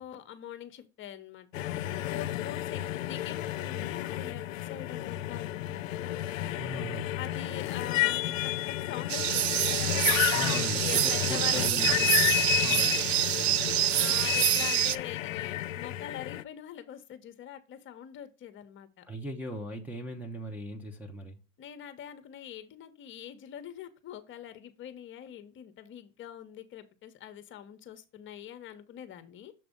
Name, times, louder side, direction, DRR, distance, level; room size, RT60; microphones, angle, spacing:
voice 1, 0.0-6.2 7.2-10.1 10.6-12.2 14.0-19.1 21.6-29.5, left 10 dB, 30° left, 1.0 m, -44 dB
sound 1, 1.5-16.4, left 14 dB, 85° left, 0.6 m, -31 dB
voice 2, 6.6-7.1 10.3-12.1 12.6-13.6 19.1-21.4, equal, 5° right, 0.8 m, -39 dB
sound 2, 9.1-15.0, right 14 dB, 55° right, 0.6 m, -27 dB
7.2 x 3.3 x 5.2 m
hypercardioid pair, 120°, 38 cm